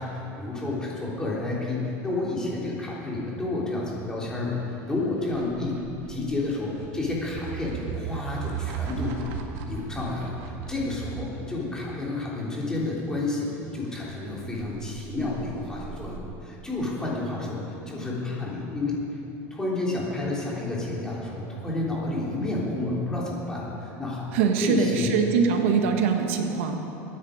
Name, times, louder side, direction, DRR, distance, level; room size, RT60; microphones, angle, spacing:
voice 1, 0.0-4.6 4.9-5.8 6.1-9.3 9.7-19.2 19.5-24.3 24.6-25.1, left 2 dB, 10° left, -5 dB, 3.2 m, -30 dB
sound 1, 4.8-11.5 14.1-16.2, right 9 dB, 65° right, 1.7 m, -37 dB
voice 2, 24.3-26.8, right 6 dB, 90° right, 4 dB, 1.5 m, -23 dB
23.5 x 10.0 x 5.1 m, 2.9 s
cardioid pair, 150°, 7 cm